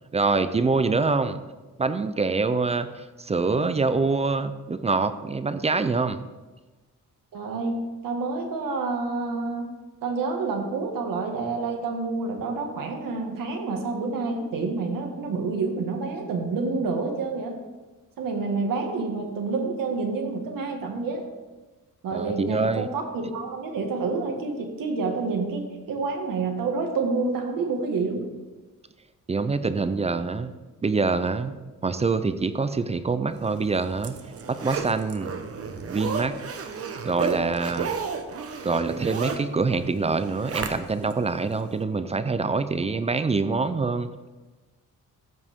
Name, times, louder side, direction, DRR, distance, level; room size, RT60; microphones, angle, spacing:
voice 1, 0.1-1.4 1.8-6.2 22.1-22.9 29.3-30.5 30.8-31.6 31.8-34.2 34.5-35.3 35.9-36.4 37.1-37.9 38.6-44.1, right 4 dB, 20° right, 11 dB, 0.4 m, -25 dB
voice 2, 7.3-7.8 8.0-9.7 10.0-17.6 18.2-21.2 22.0-28.3, right 4 dB, 85° right, 3 dB, 1.8 m, -28 dB
Zipper (clothing), 33.5-41.1 41.6-41.7, right 5 dB, 45° right, 0.9 m, -33 dB
14.5 x 8.2 x 3.6 m, 1.2 s
wide cardioid pair, 150°, 33 cm